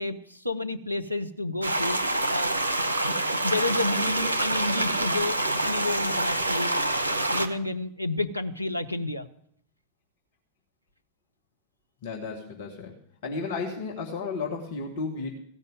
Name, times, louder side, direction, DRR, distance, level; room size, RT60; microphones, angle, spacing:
voice 1, 0.0-2.0 2.3-2.5 2.8-5.4 5.6-6.7 7.1-9.3, left 2 dB, 90° left, 7 dB, 0.7 m, -30 dB
sound 1, 1.6-7.5, right 1 dB, 80° right, 1.0 m, -26 dB
voice 2, 12.0-12.9 13.2-15.3, left 4 dB, 55° left, -1 dB, 2.0 m, -33 dB
16.0 x 5.4 x 9.2 m, 0.66 s
figure-of-eight pair, 90°, 0 cm